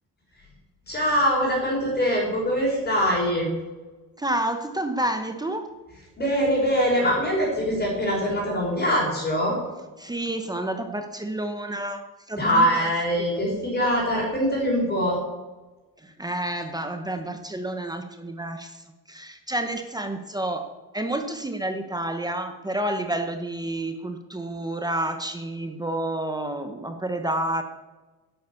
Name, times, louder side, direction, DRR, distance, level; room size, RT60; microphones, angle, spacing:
voice 1, 0.9-3.5 6.2-9.6 12.4-15.2, equal, 25° left, -2 dB, 5.2 m, -23 dB
voice 2, 4.2-5.7 10.0-12.9 16.0-20.6 20.9-27.6, right 1 dB, 10° right, 6 dB, 0.9 m, -29 dB
12.0 x 11.5 x 7.0 m, 1.2 s
cardioid pair, 165°, 39 cm